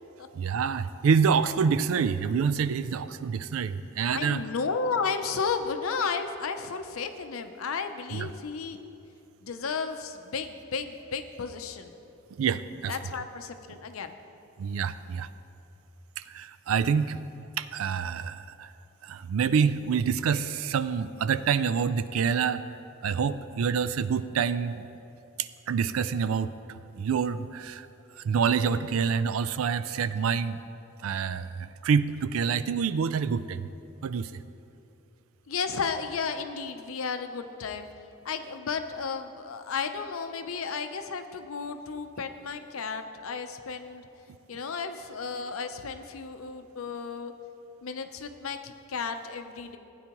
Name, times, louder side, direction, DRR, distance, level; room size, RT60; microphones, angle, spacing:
voice 1, 0.3-4.4 8.1-8.3 12.3-13.0 14.6-15.3 16.2-17.2 17.6-18.7 19.0-22.6 23.0-24.8 25.4-26.5 27.0-27.9 28.2-30.6 31.0-33.7 34.0-34.4, right 6 dB, 85° right, 14 dB, 0.4 m, -27 dB
voice 2, 4.1-8.8 9.4-11.9 12.9-14.2 35.5-37.9 38.2-44.1 44.5-47.3 47.8-49.8, left 5 dB, 90° left, 8 dB, 0.6 m, -33 dB
15.5 x 9.2 x 3.0 m, 2.8 s
head